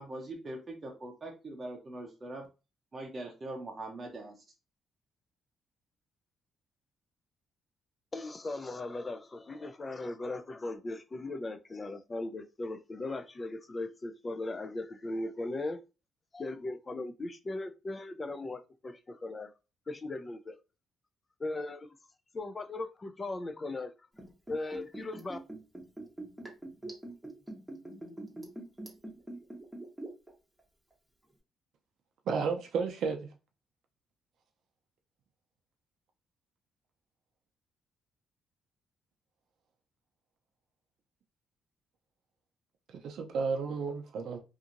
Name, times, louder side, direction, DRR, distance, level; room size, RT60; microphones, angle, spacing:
voice 1, 0.0-2.5 2.9-4.4, right 2 dB, 30° right, 0.6 m, -42 dB
voice 2, 8.1-15.8 16.3-19.5 19.9-20.6 21.4-21.9 22.3-23.9 24.5-25.4, left 2 dB, 30° left, 0.4 m, -38 dB
Liquid, 24.1-30.3 30.6-30.7, right 2 dB, 5° right, 1.0 m, -43 dB
voice 3, 32.3-33.3 43.0-44.4, right 5 dB, 70° right, 0.5 m, -32 dB
2.8 x 2.5 x 2.5 m
cardioid pair, 90°, 0 cm